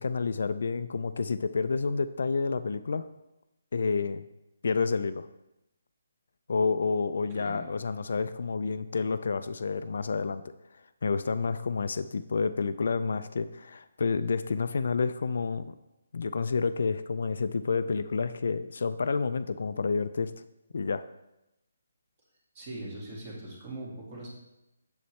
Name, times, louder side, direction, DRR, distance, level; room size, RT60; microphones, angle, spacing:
voice 1, 0.0-3.0 3.7-4.2 4.6-5.3 6.5-10.4 11.0-15.7 16.1-20.3 20.7-21.0, left 4 dB, 65° left, 12 dB, 0.3 m, -29 dB
voice 2, 22.5-24.3, right 1 dB, 30° right, -4 dB, 2.0 m, -41 dB
7.2 x 7.0 x 3.2 m, 0.93 s
hypercardioid pair, 170°, 0 cm